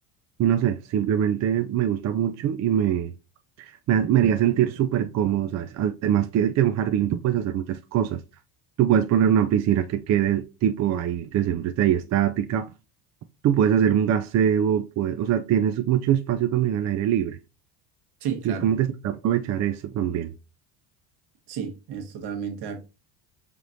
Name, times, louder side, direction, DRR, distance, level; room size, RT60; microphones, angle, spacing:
voice 1, 0.4-3.1 3.6-8.2 8.8-12.7 13.4-17.4 18.4-20.3, right 10 dB, 40° right, 0.4 m, -23 dB
voice 2, 18.2-18.7 21.5-22.9, right 7 dB, 65° right, 1.4 m, -32 dB
5.0 x 3.0 x 2.6 m
supercardioid pair, 100°, 44 cm